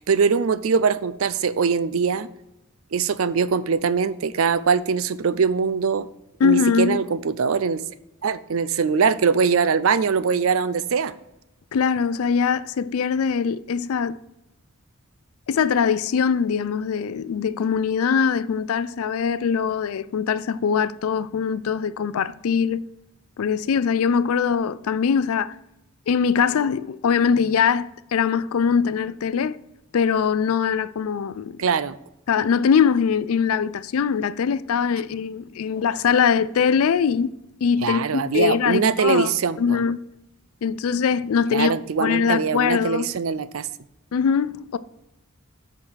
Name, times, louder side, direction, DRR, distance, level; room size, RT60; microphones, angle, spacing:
voice 1, 0.0-2.3 2.9-6.1 6.4-7.8 8.2-11.1 31.6-32.0 37.8-39.8 41.5-43.7, right 5 dB, 70° right, 0.5 m, -22 dB
voice 2, 6.4-7.0 11.7-14.2 15.5-22.8 23.4-25.5 26.1-29.6 29.9-31.6 32.3-37.3 37.6-39.3 39.6-40.1 40.6-41.7 42.0-43.1 44.1-44.8, left 6 dB, 80° left, 0.4 m, -22 dB
8.6 x 5.9 x 4.6 m
head